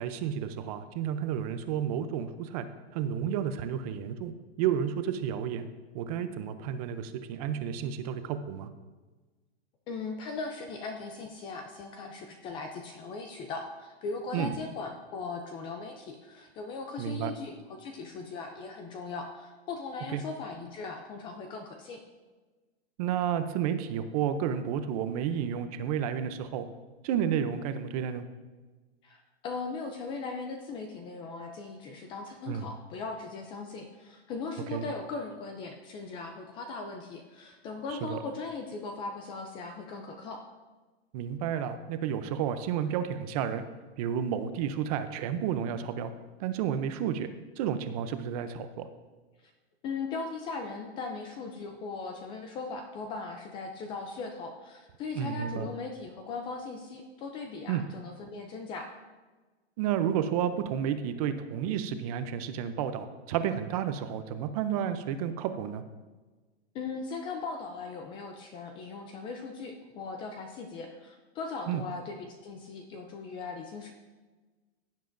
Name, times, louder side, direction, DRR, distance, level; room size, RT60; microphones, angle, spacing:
voice 1, 0.0-2.7 2.9-5.7 5.9-8.7 14.3-14.5 17.0-17.3 20.1-20.2 23.0-26.6 27.0-28.2 32.5-32.7 34.7-34.9 37.9-38.2 41.1-43.6 44.0-46.1 46.4-47.3 47.6-48.9 55.1-55.7 57.7-57.8 59.8-65.8 71.7-71.8, right 9 dB, 35° right, 10 dB, 0.6 m, -31 dB
voice 2, 9.9-22.0 29.0-40.4 49.8-58.9 66.7-73.9, left 4 dB, 15° left, 4 dB, 0.4 m, -39 dB
16.0 x 7.4 x 2.6 m, 1.3 s
hypercardioid pair, 145°, 33 cm